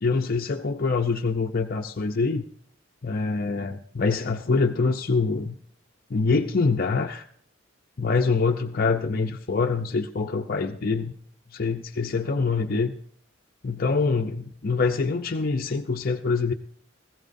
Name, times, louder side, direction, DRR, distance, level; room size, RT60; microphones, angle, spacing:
voice 1, 0.0-2.4 3.0-5.5 6.1-7.2 8.0-11.1 11.5-12.9 13.6-16.5, left 4 dB, 50° left, 4 dB, 0.6 m, -25 dB
19.5 x 16.0 x 2.6 m, 0.65 s
head